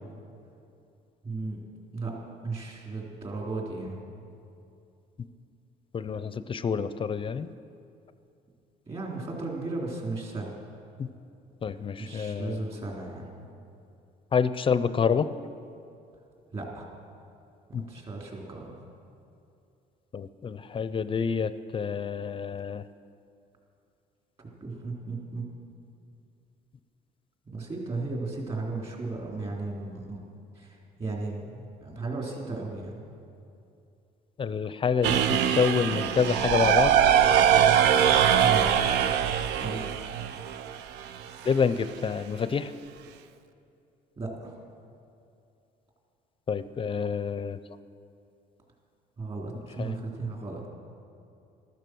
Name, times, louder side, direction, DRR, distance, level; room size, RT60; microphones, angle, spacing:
voice 1, 1.2-1.6 1.9-2.1 2.4-4.0 8.9-10.5 12.0-13.3 16.5-16.9 17.7-18.8 24.6-25.4 27.5-30.2 30.5-33.0 38.4-38.7 39.6-39.8 44.2-44.5 49.2-50.7, right 3 dB, 35° right, -2 dB, 3.7 m, -35 dB
voice 2, 5.9-7.5 11.0-11.1 11.6-12.6 14.3-15.3 17.7-17.8 20.1-22.8 34.4-37.0 41.4-42.7 46.5-47.6 49.8-50.0, left 6 dB, 30° left, 14 dB, 0.5 m, -27 dB
sound 1, 35.0-41.0, right 9 dB, 90° right, 0.6 m, -22 dB
13.5 x 13.0 x 6.3 m, 2.6 s
cardioid pair, 110°, 17 cm